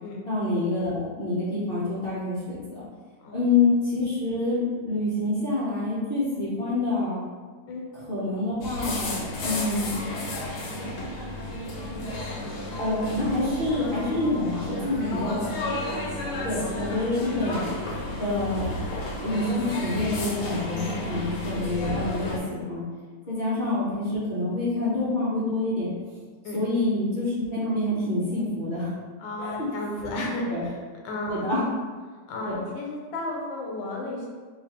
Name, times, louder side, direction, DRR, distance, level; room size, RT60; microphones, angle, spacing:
voice 1, 0.3-2.8 3.3-7.2 7.9-9.9 12.8-15.5 16.4-17.6 18.2-18.7 19.2-22.8 23.3-25.9 26.5-28.9 29.4-29.7 30.5-30.6 31.3-31.7 32.4-32.6, left 2 dB, 50° left, -10 dB, 0.7 m, -27 dB
sound 1, 8.6-22.4, left 1 dB, 70° left, 1.2 m, -32 dB
voice 2, 15.1-15.6 20.7-20.9 23.2-23.5 26.4-26.6 29.2-30.8 31.0-31.4 32.3-34.3, left 1 dB, 85° left, -2 dB, 1.5 m, -33 dB
3.1 x 2.5 x 4.1 m, 1.5 s
omnidirectional pair, 2.1 m